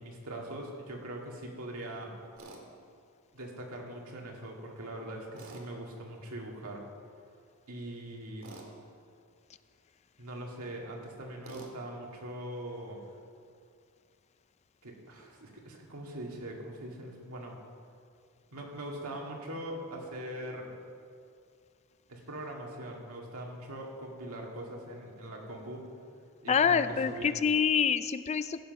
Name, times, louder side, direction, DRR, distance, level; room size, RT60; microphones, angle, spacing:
voice 1, 0.0-2.2 3.3-6.9 7.7-8.5 10.2-13.0 14.8-17.6 18.5-20.7 22.1-25.9 26.4-27.3, right 1 dB, 90° right, -1 dB, 2.1 m, -42 dB
Tools, 2.4-2.6 5.4-5.7 8.4-8.7 11.4-11.7, right 2 dB, 70° right, 1.7 m, -47 dB
voice 2, 26.5-28.6, left 6 dB, 30° left, 13 dB, 0.3 m, -26 dB
15.5 x 7.8 x 5.3 m, 2.3 s
head